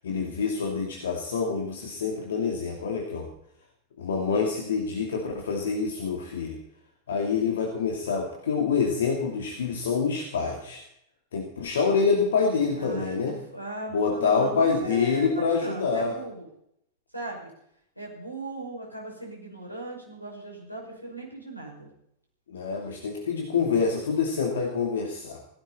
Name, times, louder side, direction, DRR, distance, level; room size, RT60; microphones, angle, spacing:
voice 1, 0.0-3.3 4.0-6.6 7.1-10.8 11.3-13.3 13.9-16.2 22.5-25.4, left 5 dB, 65° left, 1 dB, 2.6 m, -26 dB
voice 2, 12.7-16.5 17.1-17.5 18.0-21.9, right 2 dB, 90° left, -1 dB, 6.1 m, -38 dB
17.0 x 16.0 x 4.3 m, 0.74 s
figure-of-eight pair, 90°, 0 cm